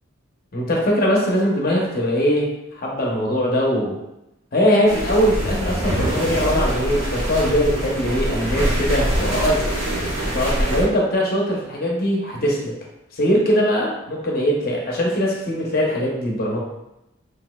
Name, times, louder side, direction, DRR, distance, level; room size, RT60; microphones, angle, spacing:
voice 1, 0.5-2.4 2.7-3.9 4.5-9.6 10.3-12.7 13.1-16.6, equal, 50° left, -3 dB, 0.8 m, -21 dB
sound 1, 4.9-10.8, right 1 dB, 85° right, 1.2 m, -24 dB
6.0 x 2.7 x 2.2 m, 0.91 s
head